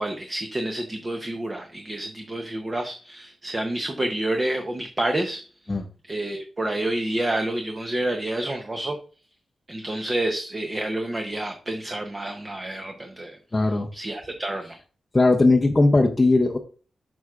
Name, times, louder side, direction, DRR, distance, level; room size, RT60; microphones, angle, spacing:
voice 1, 0.0-5.4 6.0-9.0 9.7-13.4 13.9-14.8, right 1 dB, 20° right, 4 dB, 0.7 m, -28 dB
voice 2, 13.5-13.9 15.1-16.6, left 2 dB, 15° left, 0 dB, 0.6 m, -18 dB
11.0 x 6.0 x 2.4 m, 0.39 s
wide cardioid pair, 180°, 0 cm